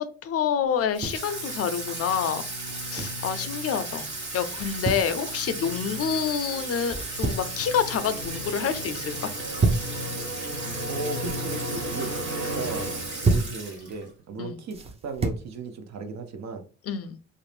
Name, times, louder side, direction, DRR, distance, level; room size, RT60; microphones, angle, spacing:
voice 1, 0.2-2.4 2.9-4.1 4.3-9.3 14.4-14.6 16.9-17.2, left 7 dB, 50° left, 11 dB, 0.4 m, -27 dB
sound 1, 0.7-1.3 2.6-3.2 4.5-5.1 6.8-7.6 7.9-8.4 9.3-9.9 11.0-11.5 12.8-13.6 14.7-15.5, right 3 dB, 20° right, 0.5 m, -29 dB
Water tap faucet / Sink (filling or washing), 0.9-14.1, right 2 dB, 35° right, 1.3 m, -36 dB
sound 2, 1.1-13.7, equal, 85° right, 1.0 m, -37 dB
voice 2, 10.9-12.9 13.2-16.6, right 3 dB, 65° right, 7 dB, 0.6 m, -36 dB
2.5 x 2.0 x 3.1 m, 0.36 s
cardioid pair, 90°, 30 cm